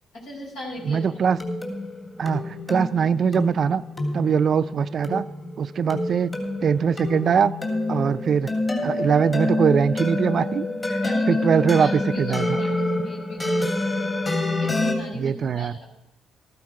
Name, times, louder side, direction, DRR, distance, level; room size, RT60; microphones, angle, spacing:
voice 1, 0.1-1.0 11.0-11.4 11.6-14.1 14.6-16.0, left 1 dB, 80° left, -3 dB, 4.7 m, -38 dB
sound 1, 0.7-14.9, left 2 dB, 30° left, 2.8 m, -27 dB
voice 2, 0.9-1.4 2.2-3.8 4.1-5.3 5.6-6.3 6.6-7.5 7.9-8.5 8.8-11.0 11.3-12.6 15.1-15.7, right 7 dB, 55° right, 14 dB, 0.4 m, -22 dB
13.5 x 13.0 x 4.8 m, 0.82 s
cardioid pair, 90°, 0 cm